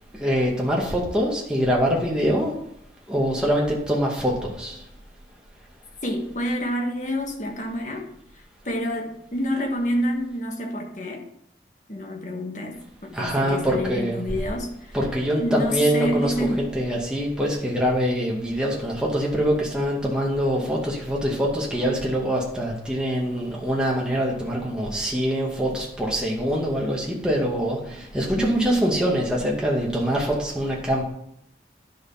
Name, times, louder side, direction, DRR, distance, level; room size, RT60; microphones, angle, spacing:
voice 1, 0.1-2.5 3.1-4.8 13.1-14.3 14.9-31.0, equal, 5° right, -3 dB, 2.2 m, -24 dB
voice 2, 6.0-8.1 8.3-11.3 11.9-15.0 15.4-16.7 28.4-28.8, equal, 45° left, 3 dB, 1.6 m, -28 dB
10.5 x 6.5 x 5.9 m, 0.75 s
head